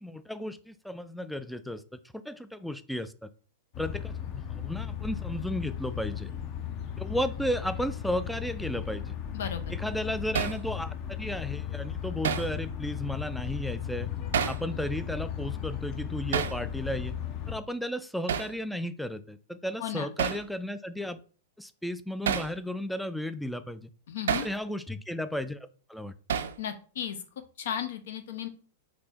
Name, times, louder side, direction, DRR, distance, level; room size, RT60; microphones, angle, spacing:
voice 1, 0.0-3.3 3.8-6.3 7.0-9.2 9.7-14.1 14.5-17.2 17.5-21.2 21.6-23.9 24.4-26.1, equal, ahead, 12 dB, 0.3 m, -34 dB
sound 1, 3.7-17.5, left 9 dB, 35° left, 0.6 m, -36 dB
Hammer, 10.4-10.6 12.2-12.5 14.3-14.6 16.3-16.6 18.3-18.5 20.2-20.5 22.3-22.5 24.3-24.5 26.3-26.6, right 7 dB, 85° right, 0.5 m, -29 dB
voice 2, 19.8-20.1 24.1-24.5 26.6-27.2 27.6-28.5, left 9 dB, 75° left, 9 dB, 0.8 m, -34 dB
4.3 x 2.8 x 4.3 m, 0.40 s
supercardioid pair, 150°, 0 cm